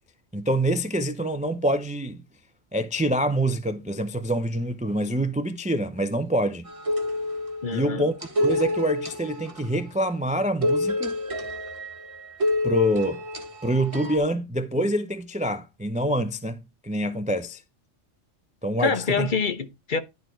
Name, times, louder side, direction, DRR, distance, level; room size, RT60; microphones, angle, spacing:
voice 1, 0.3-2.2 2.7-6.7 7.7-11.2 12.6-13.2 13.6-17.6 18.6-19.3, right 1 dB, 10° right, 0.3 m, -26 dB
sound 1, 6.7-9.9 10.6-14.2, left 2 dB, 25° right, 1.6 m, -28 dB
voice 2, 7.6-8.1 18.8-20.0, left 5 dB, 45° left, 0.8 m, -26 dB
11.0 x 4.5 x 4.5 m
omnidirectional pair, 1.2 m